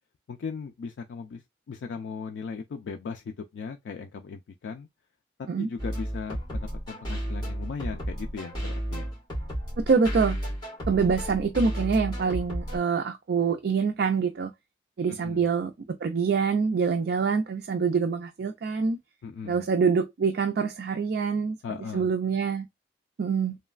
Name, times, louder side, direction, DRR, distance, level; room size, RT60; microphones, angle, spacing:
voice 1, 0.3-4.9 5.6-9.1 15.1-15.5 19.2-19.6 21.6-22.1, left 5 dB, 85° left, 0.3 m, -38 dB
sound 1, 5.8-12.8, equal, 25° left, 1.6 m, -33 dB
voice 2, 9.8-10.4 10.9-14.5 15.0-19.0 19.4-21.6 21.9-22.7 23.2-23.6, right 5 dB, 60° right, 0.4 m, -25 dB
3.1 x 2.1 x 2.3 m
head